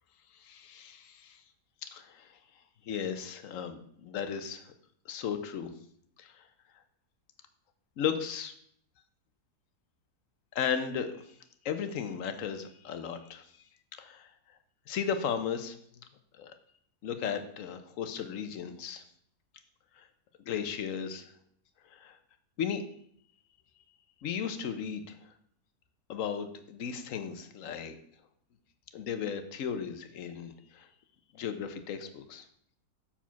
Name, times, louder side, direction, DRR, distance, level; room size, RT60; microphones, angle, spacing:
voice 1, 0.3-1.4 1.8-2.4 2.8-4.7 5.1-5.7 6.2-6.5 8.0-8.5 10.5-11.3 11.6-13.5 14.0-14.3 14.9-15.8 16.4-16.5 17.0-19.0 20.0-20.1 20.5-21.3 21.9-22.2 22.6-22.8 24.2-25.2 26.1-27.9 28.9-30.9 31.3-32.5, left 7 dB, 60° left, 9 dB, 1.1 m, -35 dB
7.2 x 4.8 x 5.7 m, 0.66 s
omnidirectional pair, 1.7 m